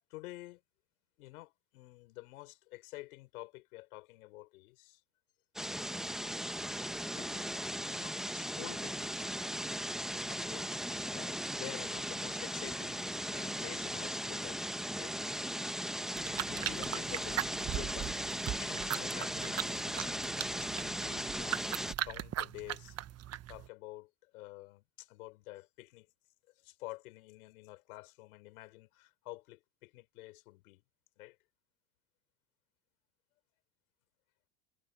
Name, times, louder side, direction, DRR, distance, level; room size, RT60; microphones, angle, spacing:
voice 1, 0.1-0.6 1.2-5.0 7.2-7.5 7.9-9.4 10.0-14.7 15.0-15.1 16.4-18.3 18.6-20.2 20.6-21.7 22.0-23.0 23.5-26.1 26.6-30.8 31.2-31.4, left 20 dB, 80° left, 6.1 m, -49 dB
sound 1, 5.6-21.9, equal, ahead, 1.3 m, -38 dB
sound 2, 16.2-23.7, right 11 dB, 35° right, 1.3 m, -39 dB
supercardioid pair, 100°, 43 cm